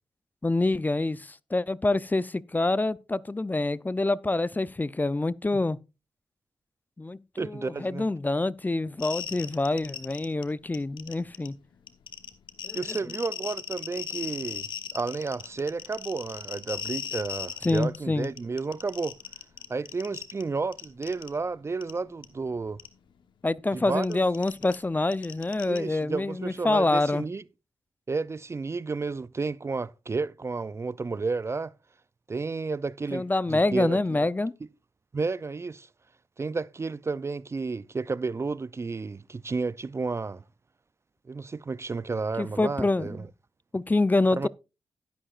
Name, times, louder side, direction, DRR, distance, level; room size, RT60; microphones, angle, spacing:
voice 1, 0.4-5.8 7.0-11.5 12.6-13.0 17.6-18.3 23.4-27.2 33.1-34.5 42.4-43.2 43.7-44.5, left 2 dB, 20° left, 0.5 m, -26 dB
voice 2, 7.4-8.1 12.7-19.2 19.7-22.8 23.7-24.2 25.7-27.4 28.1-31.7 32.3-34.2 35.1-35.9 36.4-40.4 41.3-43.2 44.4-44.5, right 4 dB, 35° right, 0.4 m, -32 dB
sound 1, 9.0-10.4 10.7-11.5 11.9-18.0 18.2-20.4 20.7-21.3 21.8-21.9 22.2-22.3 22.8-22.9 23.9-25.8, left 8 dB, 75° left, 1.1 m, -37 dB
11.5 x 11.5 x 2.5 m
supercardioid pair, 45°, 8 cm